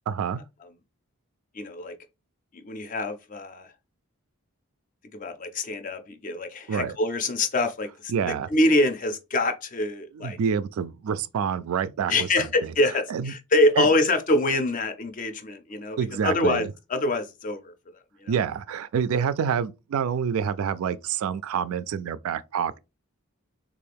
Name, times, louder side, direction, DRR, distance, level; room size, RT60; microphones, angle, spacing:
voice 1, 0.1-0.4 6.7-6.9 8.1-8.5 10.2-12.7 13.1-13.3 13.8-13.9 16.0-16.7 18.3-22.8, right 7 dB, 75° right, 0.3 m, -27 dB
voice 2, 1.5-1.9 2.5-3.7 5.1-10.4 12.1-17.7 18.2-18.3, left 2 dB, 35° left, 0.4 m, -25 dB
3.6 x 2.4 x 3.4 m
head